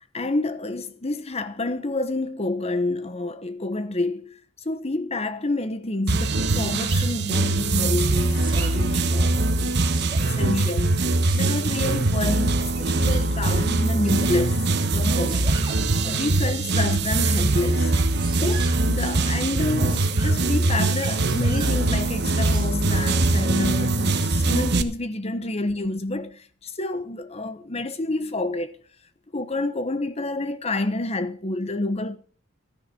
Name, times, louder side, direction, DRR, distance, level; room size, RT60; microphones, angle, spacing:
voice 1, 0.1-4.4 4.6-10.9 11.3-14.6 14.9-15.5 16.0-17.9 18.4-28.8 29.3-32.2, left 2 dB, 30° left, 1.1 m, -28 dB
sound 1, 6.1-24.8, right 2 dB, 60° right, 1.1 m, -22 dB
Sneeze, 6.6-7.1 8.1-8.7 9.6-10.4 11.3-11.8 12.7-13.3 14.0-14.5 15.2-15.8 17.9-18.8 19.6-20.4 21.0-21.8 22.4-22.7, right 5 dB, 25° right, 3.3 m, -39 dB
13.5 x 10.5 x 6.2 m
head